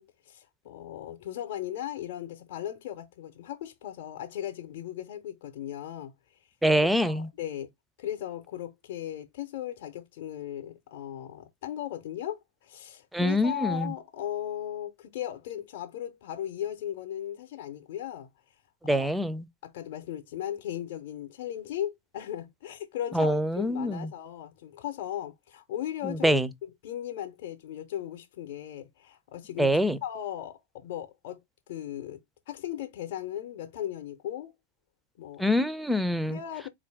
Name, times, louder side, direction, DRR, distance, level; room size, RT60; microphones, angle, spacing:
voice 1, 0.0-6.1 6.7-7.7 8.0-18.3 18.8-19.1 19.6-31.4 31.7-32.2 32.5-34.5 35.2-35.4 36.3-36.7, left 11 dB, 55° left, 0.6 m, -37 dB
voice 2, 6.6-7.3 13.1-13.9 18.8-19.5 23.1-24.1 26.0-26.5 29.6-30.0 35.4-36.4, equal, 5° right, 0.4 m, -25 dB
4.3 x 2.5 x 3.3 m
figure-of-eight pair, 90°, 0 cm